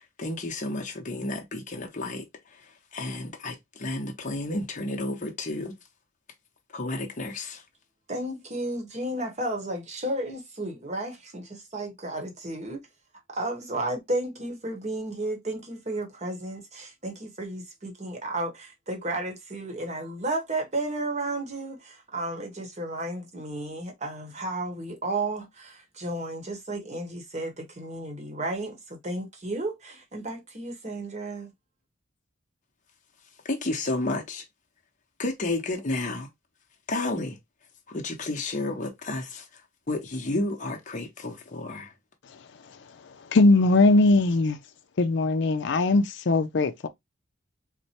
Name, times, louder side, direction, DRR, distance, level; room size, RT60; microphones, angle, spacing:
voice 1, 0.0-2.6 2.9-5.8 6.7-7.6 33.4-34.5 35.2-36.3 36.9-37.4 37.9-39.6 39.9-41.9, left 2 dB, 40° left, 0.8 m, -31 dB
voice 2, 8.1-12.8 13.3-31.5, right 2 dB, 35° right, 1.0 m, -33 dB
voice 3, 43.3-44.6 45.0-46.9, left 2 dB, 60° left, 0.5 m, -20 dB
4.2 x 2.1 x 2.8 m
head